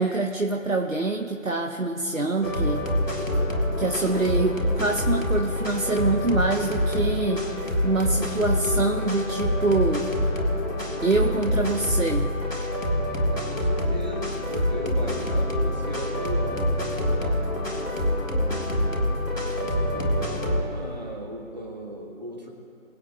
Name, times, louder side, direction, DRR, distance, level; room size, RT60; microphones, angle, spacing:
voice 1, 0.0-2.9 3.8-7.4 7.8-10.1 11.0-12.3, right 3 dB, 80° right, 1 dB, 1.3 m, -25 dB
sound 1, 2.4-20.6, left 1 dB, 75° left, 2.1 m, -26 dB
voice 2, 13.3-16.6 17.2-17.3 19.4-22.5, equal, 35° right, 0 dB, 1.8 m, -37 dB
23.0 x 8.2 x 2.5 m, 2.9 s
figure-of-eight pair, 165°, 40 cm